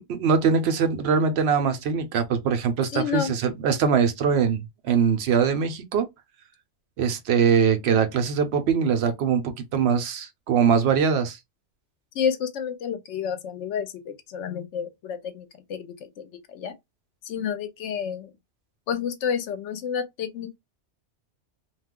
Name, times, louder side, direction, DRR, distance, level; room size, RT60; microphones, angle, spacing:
voice 1, 0.1-6.1 7.0-11.4, right 6 dB, 70° right, 0.8 m, -22 dB
voice 2, 2.9-3.3 12.1-16.7 17.3-18.3 18.9-20.6, left 7 dB, 85° left, 0.9 m, -30 dB
2.4 x 2.3 x 3.5 m
omnidirectional pair, 1.2 m